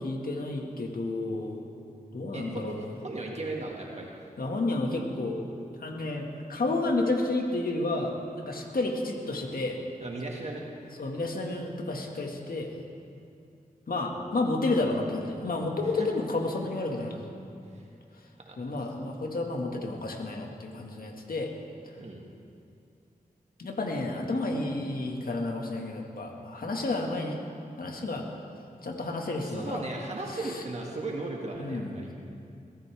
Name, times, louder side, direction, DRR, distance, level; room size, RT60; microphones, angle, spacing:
voice 1, 0.0-1.7 2.1-2.9 4.4-5.4 5.8-9.8 11.0-12.7 13.9-17.2 18.6-21.5 23.6-27.4 27.8-28.2 28.8-29.8 30.4-30.6 31.6-32.1, left 2 dB, 70° left, 1 dB, 1.9 m, -31 dB
voice 2, 2.3-4.1 10.0-10.6 16.0-16.1 17.7-17.8 18.5-18.6 19.0-19.2 22.0-22.2 29.4-32.1, right 2 dB, 45° right, -1 dB, 2.0 m, -36 dB
22.0 x 13.5 x 3.5 m, 2.5 s
cardioid pair, 50°, 16 cm